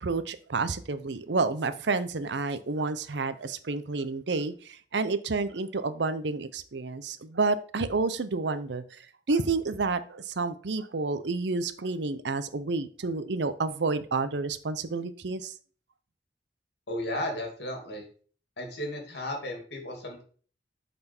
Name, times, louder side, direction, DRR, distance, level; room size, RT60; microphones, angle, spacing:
voice 1, 0.0-9.0 9.3-15.5, right 3 dB, 70° right, 13 dB, 0.6 m, -30 dB
voice 2, 16.9-18.0 18.6-20.2, left 1 dB, 65° left, 2 dB, 2.2 m, -34 dB
8.7 x 4.3 x 4.4 m, 0.43 s
head